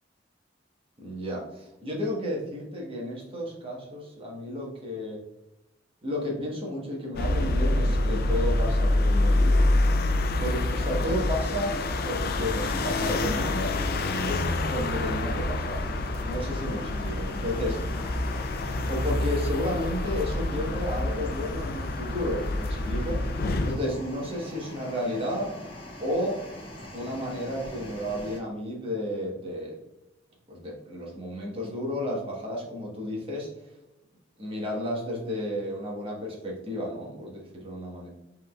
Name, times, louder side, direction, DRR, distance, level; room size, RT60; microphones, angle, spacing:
voice 1, 1.0-5.2 6.0-9.6 10.4-11.8 12.0-13.7 14.2-15.8 16.2-17.8 18.9-23.2 23.6-25.5 26.0-26.4 26.9-29.7 30.5-33.5 34.4-38.1, left 1 dB, 30° right, -2 dB, 1.3 m, -32 dB
sound 1, 7.2-23.8, left 2 dB, 55° left, 0.5 m, -26 dB
sound 2, 12.6-28.4, left 1 dB, 30° left, 1.1 m, -43 dB
5.4 x 3.6 x 2.4 m, 0.88 s
head